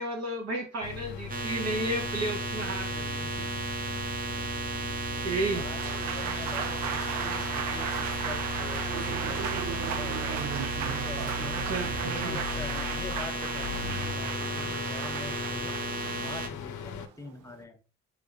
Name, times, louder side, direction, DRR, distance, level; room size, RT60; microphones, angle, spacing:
voice 1, 0.0-3.5 5.2-5.6 11.4-12.4, right 1 dB, 60° right, 1 dB, 1.0 m, -33 dB
sound 1, 0.8-17.1, left 4 dB, 70° left, 0.5 m, -38 dB
sound 2, 1.3-16.5, right 3 dB, 30° right, 0.6 m, -34 dB
voice 2, 5.5-10.4 10.9-15.7 16.2-17.8, left 3 dB, 10° left, 5 dB, 0.6 m, -44 dB
Applause, 5.6-17.6, right 8 dB, 85° right, 0.5 m, -36 dB
3.6 x 2.9 x 2.4 m, 0.35 s
cardioid pair, 90°, 30 cm